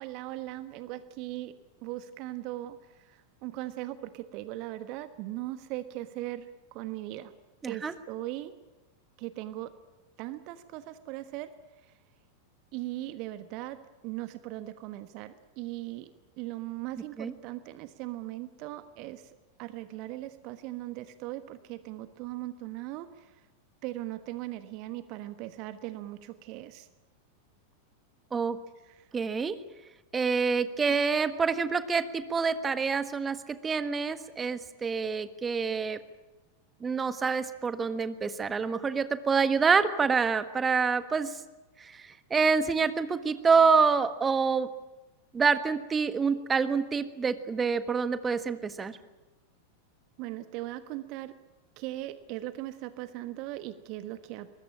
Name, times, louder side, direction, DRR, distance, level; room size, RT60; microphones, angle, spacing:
voice 1, 0.0-1.5 1.8-2.8 3.0-7.3 7.7-8.5 9.2-9.7 10.2-11.5 12.7-13.8 14.0-19.3 19.6-23.3 23.8-26.9 28.9-29.0 50.2-51.3 51.8-54.5, right 16 dB, 40° right, 12 dB, 1.3 m, -39 dB
voice 2, 7.6-7.9 17.2-17.3 28.3-28.6 29.1-29.5 30.1-36.0 36.8-41.4 41.8-44.7 45.3-49.0, right 5 dB, 15° right, 12 dB, 1.5 m, -27 dB
23.5 x 21.0 x 8.7 m, 1.1 s
figure-of-eight pair, 90°, 0 cm